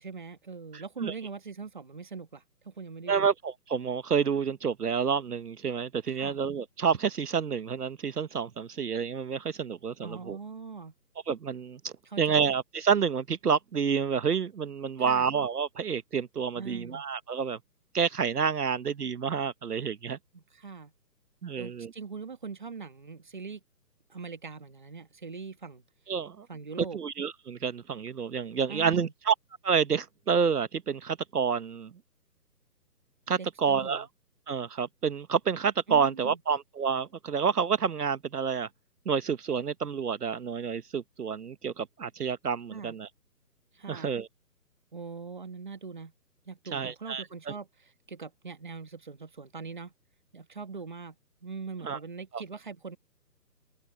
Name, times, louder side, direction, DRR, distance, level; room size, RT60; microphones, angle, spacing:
voice 1, 0.0-3.3 6.1-6.4 10.0-10.9 12.1-12.5 15.0-15.3 16.5-17.0 20.3-20.9 21.6-23.6 24.1-25.8 26.5-27.0 28.7-29.1 33.4-34.0 35.9-36.4 42.7-42.9 43.7-44.2 44.9-46.1 46.4-49.9 50.3-51.1 51.4-53.0, right 5 dB, 30° right, 1.5 m, -42 dB
voice 2, 0.7-1.1 3.1-10.4 11.3-17.6 17.9-20.2 21.4-21.9 26.1-26.5 26.9-29.3 29.6-31.9 33.3-34.1 34.5-38.7 39.1-43.1 43.9-44.3 46.7-47.5 51.8-52.0 52.3-52.4, right 6 dB, 70° right, 1.1 m, -29 dB
open air
hypercardioid pair, 180°, 49 cm